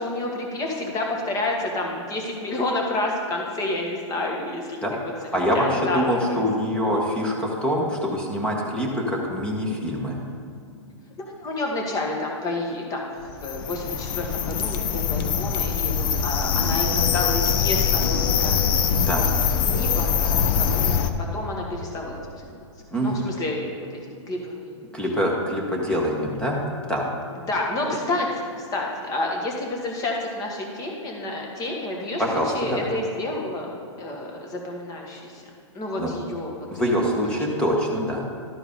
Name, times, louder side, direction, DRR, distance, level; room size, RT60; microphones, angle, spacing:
voice 1, 0.0-4.8 5.2-6.4 6.9-7.0 11.2-18.5 19.0-19.3 19.7-20.9 21.3-22.7 23.0-23.8 24.3-24.8 27.5-33.7 34.0-35.4 35.7-36.5 37.4-37.5, left 2 dB, 20° left, 0 dB, 1.6 m, -29 dB
voice 2, 5.3-10.2 19.0-19.2 22.9-23.3 24.9-26.6 26.9-27.1 32.2-32.9 36.0-36.1 36.7-38.2, equal, 5° left, -2 dB, 1.2 m, -24 dB
sound 1, 13.3-21.1, left 7 dB, 45° left, 0.7 m, -23 dB
12.0 x 4.6 x 5.3 m, 2.4 s
hypercardioid pair, 135°, 16 cm